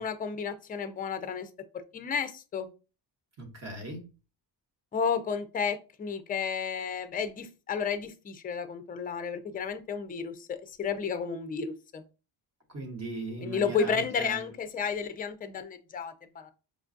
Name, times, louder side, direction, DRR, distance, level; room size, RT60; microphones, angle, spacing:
voice 1, 0.0-1.5 1.9-2.7 4.9-12.0 13.4-16.5, left 6 dB, 20° left, 0.4 m, -32 dB
voice 2, 3.4-4.1 12.7-14.5, right 2 dB, 35° right, 1.1 m, -38 dB
5.1 x 2.2 x 2.5 m
cardioid pair, 120°, 44 cm